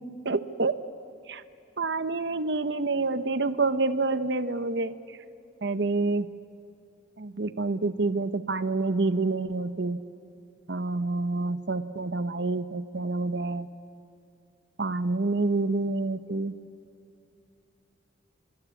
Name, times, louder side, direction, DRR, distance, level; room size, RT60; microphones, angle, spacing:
voice 1, 0.2-0.7 1.3-1.4 1.8-5.0 5.6-6.3 7.2-10.0 10.7-13.7 14.8-16.5, right 3 dB, 60° right, 13 dB, 0.8 m, -27 dB
26.5 x 24.0 x 8.3 m, 2.8 s
head